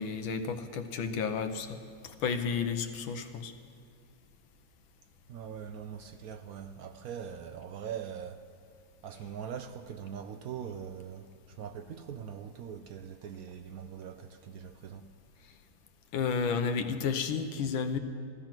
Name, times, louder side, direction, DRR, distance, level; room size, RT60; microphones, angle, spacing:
voice 1, 0.0-3.5 16.1-18.0, left 5 dB, 90° left, 1.7 m, -32 dB
voice 2, 5.3-8.4 9.0-15.1, right 8 dB, 70° right, 0.8 m, -42 dB
15.5 x 13.5 x 5.9 m
omnidirectional pair, 2.1 m